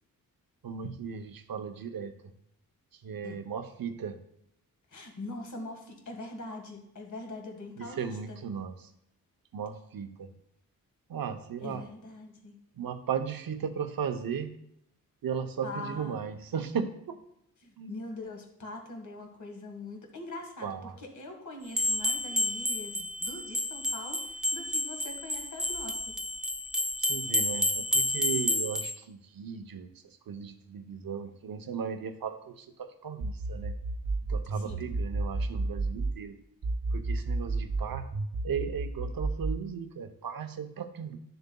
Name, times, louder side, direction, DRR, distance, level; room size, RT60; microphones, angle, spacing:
voice 1, 0.6-2.1 3.0-4.2 7.8-8.9 9.5-10.3 11.1-11.8 12.7-14.5 15.2-17.2 17.8-18.0 20.6-21.0 27.0-29.9 30.3-33.7 34.3-36.4 36.9-38.1 38.4-41.2, right 7 dB, 75° right, 8 dB, 0.8 m, -36 dB
voice 2, 4.9-8.4 11.6-12.6 15.6-16.2 17.6-26.1 34.5-34.9, left 2 dB, 55° left, 2 dB, 1.7 m, -43 dB
sound 1, 21.7-28.9, left 1 dB, ahead, 0.4 m, -30 dB
sound 2, 33.2-36.2 36.6-39.6, right 3 dB, 50° right, 0.7 m, -31 dB
12.0 x 6.7 x 2.3 m, 0.76 s
wide cardioid pair, 150°, 35 cm